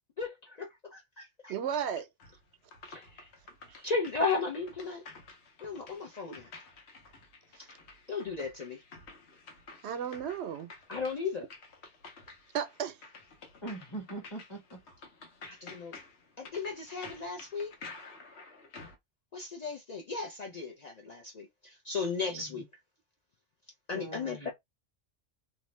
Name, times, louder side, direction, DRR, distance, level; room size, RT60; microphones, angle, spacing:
voice 1, 0.2-1.5 2.9-3.3 3.8-5.0 5.6-6.5 8.1-8.8 10.9-11.5 15.4-15.9 16.4-17.7 19.3-22.6 23.9-24.5, left 4 dB, 50° left, 0.5 m, -35 dB
voice 2, 1.5-2.1 3.7-3.9 6.3-6.4 7.6-7.7 9.8-10.7 12.5-13.0, right 8 dB, 85° right, 0.9 m, -34 dB
sound 1, 2.2-19.0, left 3 dB, 80° left, 1.0 m, -51 dB
voice 3, 13.6-14.8 22.2-22.6 23.9-24.5, right 2 dB, 25° left, 0.9 m, -42 dB
2.6 x 2.1 x 3.1 m
omnidirectional pair, 1.1 m